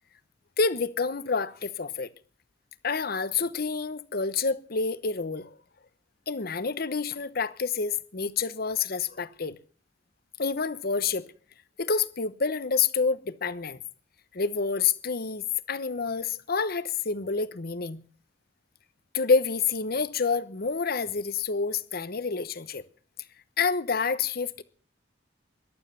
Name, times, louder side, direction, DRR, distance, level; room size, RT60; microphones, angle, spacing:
voice 1, 0.6-2.1 2.8-5.5 6.3-9.6 10.4-11.3 11.8-13.8 14.3-18.0 19.1-22.8 23.6-24.6, left 5 dB, 55° left, 0.9 m, -28 dB
15.0 x 11.5 x 6.8 m
head